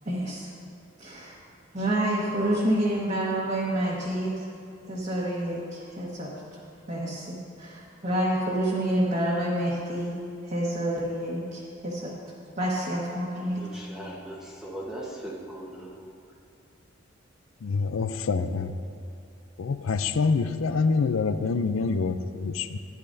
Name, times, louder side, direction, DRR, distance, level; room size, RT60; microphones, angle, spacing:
voice 1, 0.0-0.5 1.0-1.3 1.7-4.5 4.8-6.6 6.9-10.1 10.5-12.1 12.6-13.7, right 1 dB, 40° right, -7 dB, 1.3 m, -28 dB
voice 2, 13.6-16.1, right 1 dB, 5° right, -5 dB, 1.2 m, -39 dB
voice 3, 17.6-18.8 19.6-22.8, left 4 dB, 80° left, 10 dB, 0.5 m, -26 dB
13.5 x 9.9 x 2.7 m, 2.5 s
head